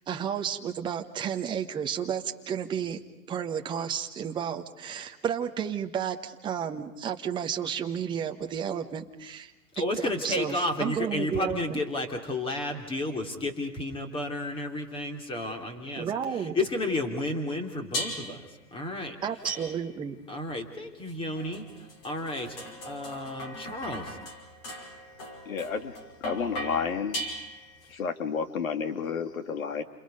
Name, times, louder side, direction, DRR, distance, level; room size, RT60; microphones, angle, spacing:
voice 1, 0.1-3.0 3.3-9.5 10.0-11.8 15.9-16.6 19.2-20.2, right 8 dB, 10° right, 5 dB, 1.1 m, -32 dB
voice 2, 9.7-16.1 16.5-18.4 18.7-19.1 20.3-21.7 22.0-24.2, left 1 dB, 10° left, 4 dB, 3.2 m, -32 dB
sound 1, 17.9-18.5 19.4-20.1 21.1-27.9, equal, 30° left, 5.3 m, -39 dB
voice 3, 25.4-27.2 27.9-29.8, left 6 dB, 55° left, 7 dB, 2.8 m, -31 dB
30.0 x 28.0 x 5.3 m, 0.99 s
figure-of-eight pair, 130°, 48 cm